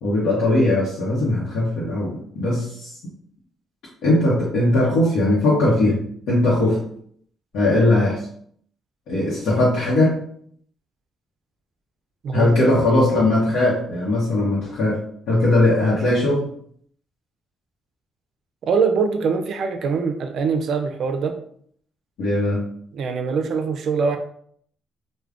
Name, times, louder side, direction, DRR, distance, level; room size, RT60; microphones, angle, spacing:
voice 1, 0.0-2.9 4.0-6.0 6.3-6.8 7.5-8.2 9.1-10.2 12.3-16.5 22.2-22.6, left 1 dB, 85° left, -7 dB, 0.8 m, -19 dB
voice 2, 18.6-21.3 22.9-24.2, right 5 dB, 65° right, 6 dB, 0.4 m, -23 dB
3.4 x 2.1 x 2.4 m, 0.63 s
cardioid pair, 90°, 0 cm